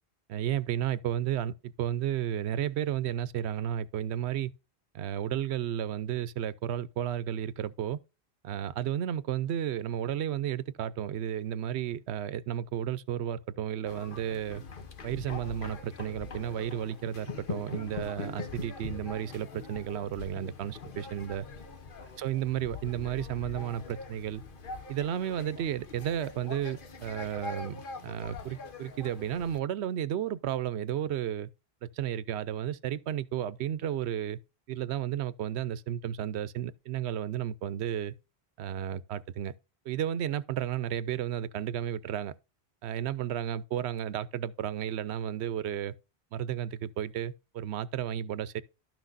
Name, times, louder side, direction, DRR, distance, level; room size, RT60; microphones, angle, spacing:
voice 1, 0.3-4.5 4.9-8.0 8.4-14.6 15.0-21.5 22.2-24.4 24.9-31.5 31.8-34.4 34.7-38.1 38.6-39.5 39.9-42.3 42.8-45.9 46.3-48.6, right 10 dB, 90° right, 0.9 m, -33 dB
sound 1, 13.9-29.6, left 4 dB, 55° left, 1.1 m, -43 dB
12.0 x 6.0 x 2.6 m
omnidirectional pair, 1.1 m